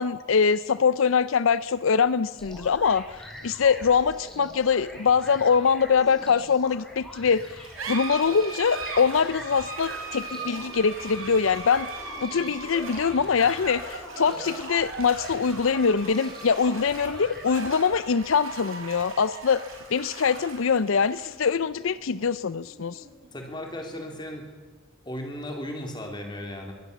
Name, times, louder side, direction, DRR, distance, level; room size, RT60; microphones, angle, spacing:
voice 1, 0.0-3.0 3.4-11.9 12.2-19.6 19.9-23.0, left 6 dB, 75° left, 16 dB, 0.5 m, -23 dB
sound 1, 2.4-17.4, left 1 dB, 5° left, 5.3 m, -43 dB
sound 2, 7.3-24.3, right 3 dB, 80° right, 5.1 m, -39 dB
voice 2, 23.3-24.4 25.0-26.7, left 1 dB, 20° left, 2 dB, 3.6 m, -36 dB
22.5 x 17.5 x 6.9 m, 1.5 s
head